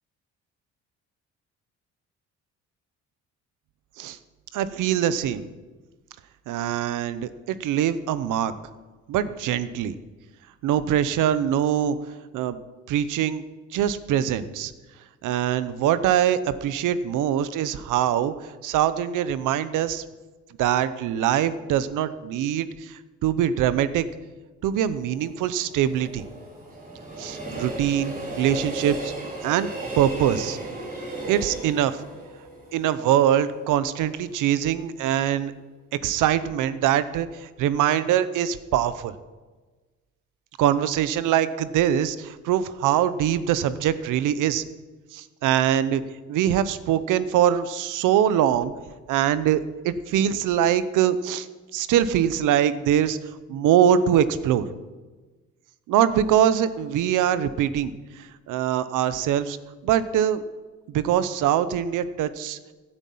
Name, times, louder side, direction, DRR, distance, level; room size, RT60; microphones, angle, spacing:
voice 1, 4.5-5.5 6.5-8.5 9.1-10.0 10.6-12.0 12.3-12.6 12.9-13.4 13.7-14.7 15.2-18.3 18.6-20.0 20.6-24.1 24.6-26.2 27.2-29.1 29.4-29.7 30.0-30.6 31.3-32.0 32.7-35.5 36.0-39.2 40.6-44.6 45.1-46.0 46.3-48.7 49.1-51.5 51.7-53.2 53.5-54.6 55.9-59.6 59.8-60.4 60.9-62.6, right 10 dB, 90° right, 14 dB, 0.8 m, -23 dB
Train, 25.0-34.0 34.4-34.5, right 2 dB, 30° right, 4.2 m, -35 dB
16.0 x 9.7 x 5.6 m, 1.3 s
cardioid pair, 90°, 30 cm